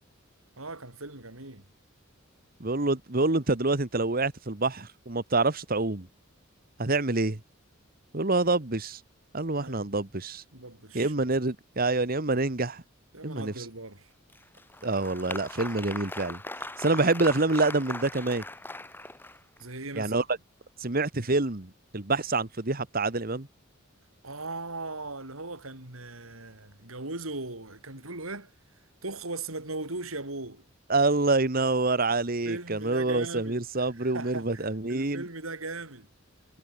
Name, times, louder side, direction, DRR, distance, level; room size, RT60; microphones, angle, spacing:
voice 1, 0.6-1.6 9.6-9.8 10.5-11.1 13.1-14.1 19.6-20.1 24.2-28.5 29.0-30.7 32.5-36.1, right 2 dB, 90° right, 5.6 m, -38 dB
voice 2, 2.6-6.1 6.8-7.4 8.1-9.0 9.3-10.4 10.9-12.8 13.2-13.5 14.8-16.4 16.8-18.4 19.9-20.2 20.8-23.5 30.9-35.2, right 3 dB, 45° right, 1.6 m, -26 dB
Applause, 14.3-19.6, left 2 dB, 10° left, 3.1 m, -39 dB
head